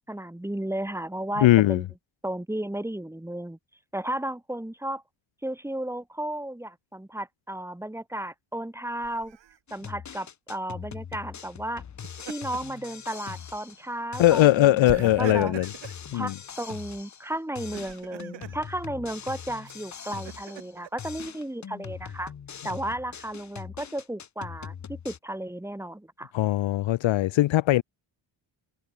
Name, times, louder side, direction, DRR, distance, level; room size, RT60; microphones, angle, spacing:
voice 1, 0.0-1.8 2.2-3.6 3.9-5.0 5.4-9.4 9.7-11.8 12.2-15.5 16.1-22.3 22.6-26.3, right 1 dB, 5° right, 3.2 m, -34 dB
voice 2, 1.4-1.8 14.2-15.7 16.1-16.3 26.3-27.8, left 15 dB, 65° left, 0.8 m, -20 dB
Laughter, 9.0-9.6 11.8-12.8 13.2-13.4 14.8-16.0 17.5-18.6 19.6-20.9, right 11 dB, 60° right, 2.8 m, -41 dB
sound 1, 9.7-13.9 14.1-17.3 17.5-20.7 21.0-25.2, left 7 dB, 35° left, 1.4 m, -42 dB
cardioid pair, 145°, 49 cm